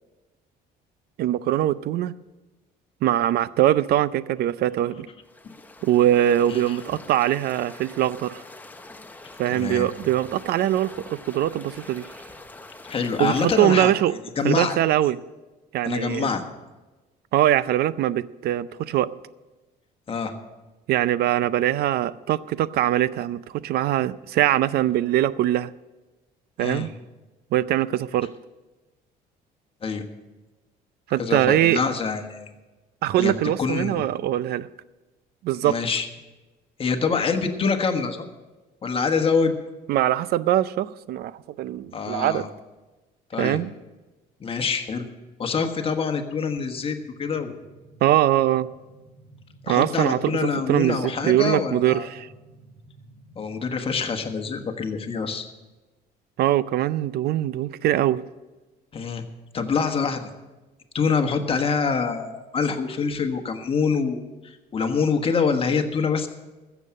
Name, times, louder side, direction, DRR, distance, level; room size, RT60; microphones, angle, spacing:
voice 1, 1.2-2.1 3.0-5.1 5.8-8.4 9.4-12.1 13.2-14.1 14.4-15.2 15.7-16.3 17.3-19.1 20.9-25.7 26.6-26.9 27.5-28.3 31.1-31.8 33.0-34.7 35.4-35.8 39.9-41.3 41.6-42.4 43.4-43.7 48.0-48.7 49.7-52.3 56.4-58.2, right 13 dB, 70° right, 18 dB, 0.5 m, -22 dB
sound 1, 5.2-13.6, left 2 dB, 10° left, 0.9 m, -44 dB
voice 2, 9.5-9.9 12.8-13.9 14.4-14.8 15.8-16.4 20.1-20.3 26.6-26.9 29.8-30.1 31.2-32.5 33.2-34.0 35.6-36.1 36.8-38.3 38.8-39.5 41.9-42.5 43.3-43.6 44.4-45.1 45.4-47.5 49.6-52.1 53.4-55.5 58.9-59.2 59.5-60.3 60.9-66.3, left 5 dB, 35° left, 6 dB, 1.4 m, -25 dB
sound 2, 46.5-55.3, right 1 dB, 35° right, 4.9 m, -51 dB
15.0 x 7.3 x 7.5 m, 1.2 s
cardioid pair, 110°, 17 cm